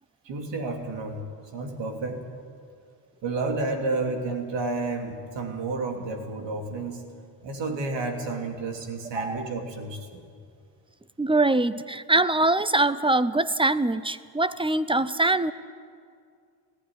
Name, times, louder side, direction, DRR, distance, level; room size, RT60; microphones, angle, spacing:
voice 1, 0.2-1.2 1.5-2.2 3.2-7.0 7.4-10.3, right 3 dB, 70° right, 3 dB, 3.2 m, -31 dB
voice 2, 11.2-15.5, right 2 dB, 10° right, 15 dB, 0.8 m, -23 dB
18.0 x 15.0 x 10.0 m, 2.2 s
supercardioid pair, 65°, 45 cm